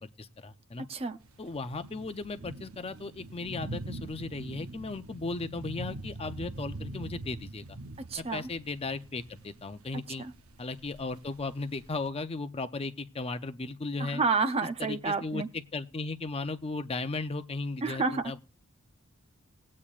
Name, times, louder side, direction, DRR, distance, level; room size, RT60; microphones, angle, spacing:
voice 1, 0.0-0.9 1.4-7.8 8.2-10.3 10.6-14.2 14.8-15.4 15.7-18.4, left 3 dB, 25° left, 0.5 m, -36 dB
sound 1, 1.2-12.1, right 2 dB, 80° right, 0.8 m, -43 dB
voice 2, 8.1-8.5 10.2-10.3 14.0-15.5 17.8-18.2, right 4 dB, 30° right, 0.6 m, -29 dB
19.0 x 8.5 x 2.5 m
head